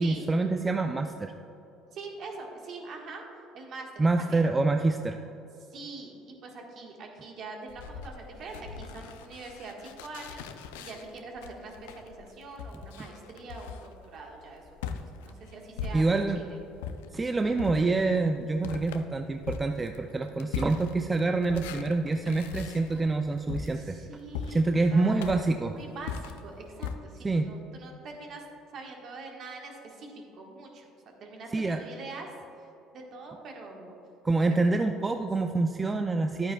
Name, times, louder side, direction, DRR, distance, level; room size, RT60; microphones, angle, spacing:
voice 1, 0.0-1.3 4.0-5.2 15.9-16.4 17.1-24.0 24.5-25.7 27.2-27.5 31.5-31.8 34.2-36.5, right 3 dB, 20° right, 5 dB, 0.4 m, -26 dB
voice 2, 1.9-3.2 3.5-4.4 5.7-10.4 10.8-13.8 14.1-14.6 15.0-16.6 23.7-24.6 24.9-25.4 25.7-28.4 28.7-30.9 31.2-32.3 32.9-34.0, right 3 dB, 55° right, 1 dB, 1.5 m, -43 dB
sound 1, 7.7-16.4 16.8-26.9, left 6 dB, 80° left, 0.4 m, -40 dB
10.5 x 8.8 x 2.3 m, 2.9 s
hypercardioid pair, 70°, 0 cm